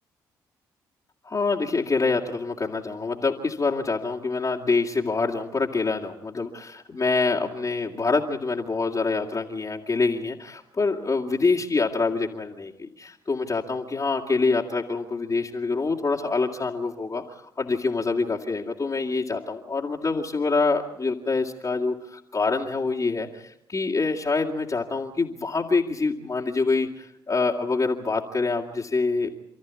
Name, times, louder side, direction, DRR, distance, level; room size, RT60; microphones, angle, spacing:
voice 1, 1.2-17.2 17.6-29.4, left 3 dB, 35° left, -2 dB, 2.6 m, -26 dB
28.5 x 14.0 x 8.4 m, 0.81 s
hypercardioid pair, 45°, 10 cm